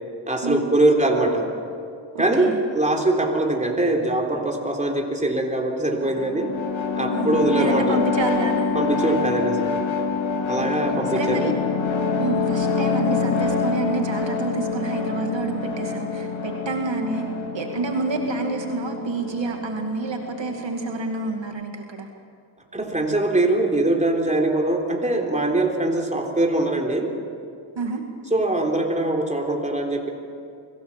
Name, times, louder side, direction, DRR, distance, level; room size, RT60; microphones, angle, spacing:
voice 1, 0.3-1.5 2.2-6.5 6.9-8.0 8.7-9.8 10.4-11.5 22.7-27.1 28.3-30.1, right 2 dB, 15° right, 1 dB, 3.8 m, -22 dB
voice 2, 2.1-2.6 7.1-8.7 10.5-10.7 11.1-11.5 12.2-17.3 17.5-22.1 27.8-28.0, right 3 dB, 65° right, 3 dB, 2.3 m, -28 dB
sound 1, 6.0-21.4, left 5 dB, 70° left, 2.4 m, -26 dB
25.0 x 16.5 x 7.5 m, 2.4 s
cardioid pair, 60°, 47 cm